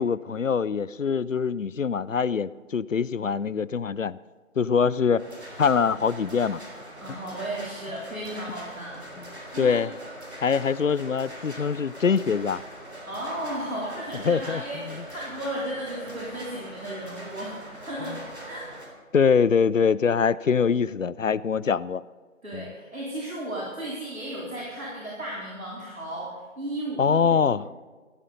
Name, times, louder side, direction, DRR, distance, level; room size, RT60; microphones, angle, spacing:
voice 1, 0.0-4.2 4.6-5.3 5.6-6.6 9.6-9.9 10.4-12.6 14.3-14.6 14.9-15.0 18.1-18.2 19.1-22.0 22.5-22.7 27.0-27.7, left 6 dB, 70° left, 20 dB, 0.5 m, -23 dB
sound 1, 5.2-18.9, equal, 55° right, 3.4 m, -42 dB
voice 2, 7.0-9.0 9.4-9.8 13.1-18.2 18.4-18.7 22.4-27.5, right 1 dB, 80° right, -6 dB, 3.9 m, -34 dB
16.0 x 11.5 x 4.1 m, 1.4 s
figure-of-eight pair, 180°, 40 cm